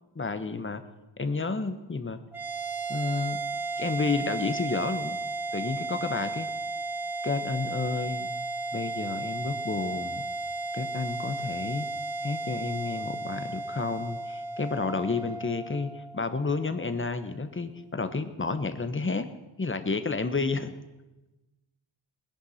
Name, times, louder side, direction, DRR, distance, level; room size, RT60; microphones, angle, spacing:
voice 1, 0.1-0.8 1.2-2.2 2.9-3.4 3.8-5.2 5.5-6.5 7.2-8.3 8.7-10.3 10.7-11.9 12.2-19.3 19.6-20.7, left 4 dB, 25° left, 10 dB, 1.3 m, -31 dB
sound 1, 2.3-16.9, right 3 dB, 5° right, 2.2 m, -34 dB
20.5 x 10.5 x 5.8 m, 1.0 s
wide cardioid pair, 100°, 44 cm